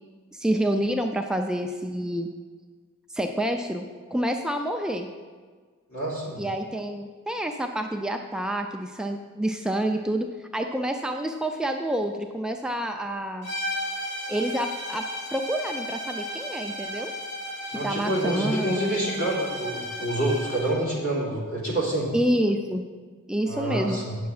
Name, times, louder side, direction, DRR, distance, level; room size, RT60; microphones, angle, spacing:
voice 1, 0.3-2.3 3.1-5.1 6.4-13.5 14.3-15.0 15.3-17.1 17.7-18.8 22.1-22.8 23.3-24.0, right 1 dB, 5° right, 4 dB, 0.3 m, -28 dB
voice 2, 5.9-6.4 17.7-22.1 23.4-24.2, right 1 dB, 70° left, -5 dB, 3.0 m, -27 dB
sound 1, 13.4-20.8, equal, 55° left, 2.6 m, -34 dB
9.2 x 7.0 x 4.8 m, 1.5 s
head